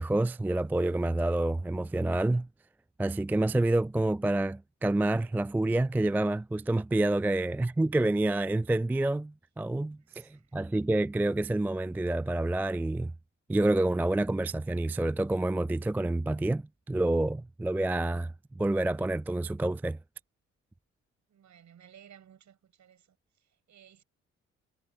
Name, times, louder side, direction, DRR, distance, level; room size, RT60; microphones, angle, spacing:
voice 1, 0.0-2.5 3.0-13.1 13.5-20.0, right 2 dB, 5° right, 0.4 m, -28 dB
voice 2, 10.0-10.5 21.3-24.0, right 9 dB, 50° right, 7.1 m, -57 dB
figure-of-eight pair, 45°, 36 cm